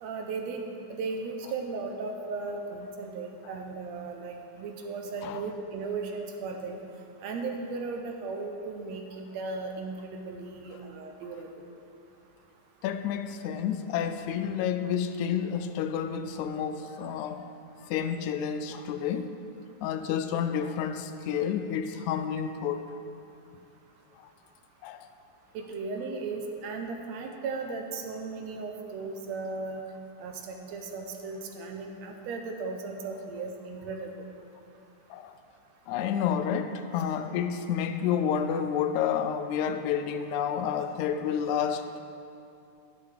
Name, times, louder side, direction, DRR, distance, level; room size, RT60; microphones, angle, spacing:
voice 1, 0.0-6.8 7.2-11.5 25.6-29.8 30.2-34.1, right 4 dB, 75° right, 3 dB, 1.8 m, -36 dB
voice 2, 12.8-17.5 17.9-19.3 19.8-22.9 24.8-25.1 35.1-35.3 35.9-42.0, left 8 dB, 85° left, 9 dB, 1.9 m, -30 dB
12.0 x 10.0 x 3.4 m, 2.6 s
omnidirectional pair, 3.3 m